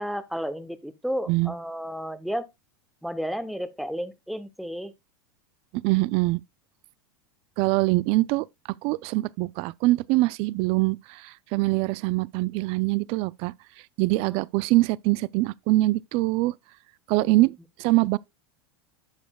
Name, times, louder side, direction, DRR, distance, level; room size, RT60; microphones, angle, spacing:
voice 1, 0.0-2.5 3.0-4.9 14.3-14.4 17.2-17.5, equal, ahead, 0.8 m, -32 dB
voice 2, 5.7-6.4 7.6-8.5 8.8-13.5 14.0-16.5 17.1-18.2, right 20 dB, 50° right, 0.4 m, -23 dB
11.0 x 7.0 x 2.3 m
supercardioid pair, 120°, 12 cm